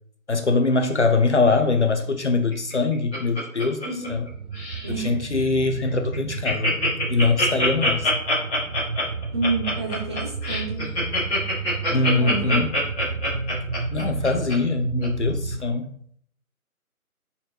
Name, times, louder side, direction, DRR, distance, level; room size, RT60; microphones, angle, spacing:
voice 1, 0.3-4.3 5.0-6.8 7.1-8.1 11.9-12.7 13.9-15.9, left 3 dB, 50° left, 6 dB, 0.8 m, -22 dB
Laughter, 2.5-4.3 4.5-4.9 5.4-5.5 5.8-5.9 6.1-14.5 15.0-15.1, left 1 dB, 5° left, 1.1 m, -25 dB
voice 2, 3.8-4.2 4.8-5.2 9.3-10.9 12.2-12.6, right 3 dB, 20° right, -3 dB, 1.3 m, -29 dB
sound 1, 4.0-15.6, right 4 dB, 65° right, 1.0 m, -32 dB
10.0 x 4.3 x 2.9 m, 0.63 s
figure-of-eight pair, 150°, 44 cm